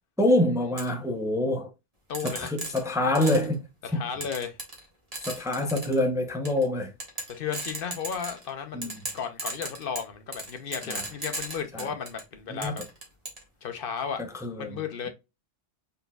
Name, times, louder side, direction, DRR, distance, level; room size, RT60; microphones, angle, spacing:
voice 1, 0.2-1.7 2.2-3.6 3.9-4.1 5.2-6.9 8.7-9.0 10.9-11.0 11.7-11.9 12.5-12.8 14.3-14.8, left 1 dB, 5° right, 0.6 m, -26 dB
sound 1, 0.8-0.9 2.1-3.5 4.2-4.8 5.1-6.0 6.4-6.6 7.0-8.5 8.8-12.2 12.6-13.4, right 2 dB, 30° right, 1.7 m, -35 dB
voice 2, 2.1-2.5 3.8-4.6 7.4-12.8 13.6-14.2 14.5-15.1, left 7 dB, 50° left, 1.0 m, -34 dB
4.3 x 3.9 x 2.3 m
omnidirectional pair, 1.2 m